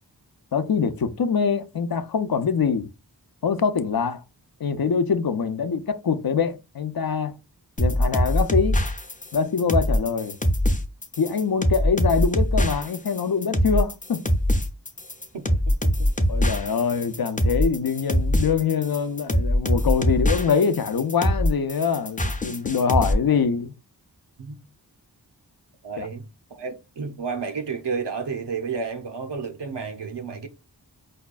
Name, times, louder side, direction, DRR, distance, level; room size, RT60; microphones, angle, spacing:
voice 1, 0.5-2.9 3.4-4.2 4.6-7.4 7.8-8.8 9.3-10.4 11.2-14.2 16.3-23.7 26.0-26.1, left 6 dB, 60° left, 0.6 m, -24 dB
sound 1, 7.8-23.1, equal, 20° left, 0.6 m, -23 dB
voice 2, 15.3-16.1 16.4-16.5 24.4-24.6 25.8-30.5, right 5 dB, 85° right, 0.7 m, -32 dB
5.0 x 2.2 x 2.4 m
wide cardioid pair, 50°, 41 cm